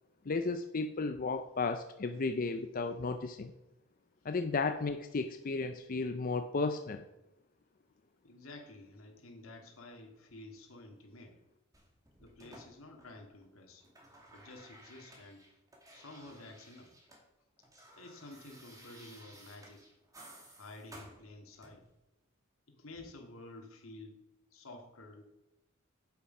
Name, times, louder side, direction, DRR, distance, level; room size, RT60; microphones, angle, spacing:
voice 1, 0.3-3.5 4.2-7.0, left 3 dB, 40° left, 7 dB, 0.5 m, -34 dB
voice 2, 8.2-11.4 12.2-13.9 14.3-15.4 15.9-16.9 18.0-19.9 20.6-21.8 22.8-24.2 24.5-25.2, left 2 dB, 80° left, 3 dB, 2.2 m, -51 dB
sound 1, 11.7-13.4 13.7-17.2 17.5-21.9 22.9-23.1, right 1 dB, 15° right, 2.3 m, -57 dB
8.3 x 8.1 x 5.4 m, 0.97 s
head